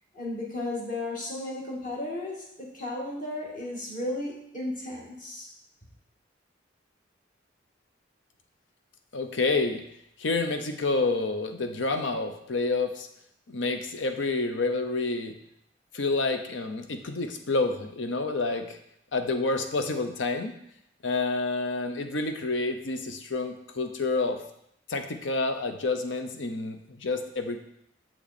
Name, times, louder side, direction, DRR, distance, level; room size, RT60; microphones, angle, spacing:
voice 1, 0.1-5.5, left 1 dB, 45° left, -3 dB, 1.9 m, -34 dB
voice 2, 9.1-9.8 10.2-13.1 13.5-15.3 15.9-18.8 19.1-20.5 21.0-24.4 24.9-27.6, left 3 dB, 85° left, 7 dB, 0.8 m, -28 dB
7.0 x 5.9 x 4.2 m, 0.75 s
head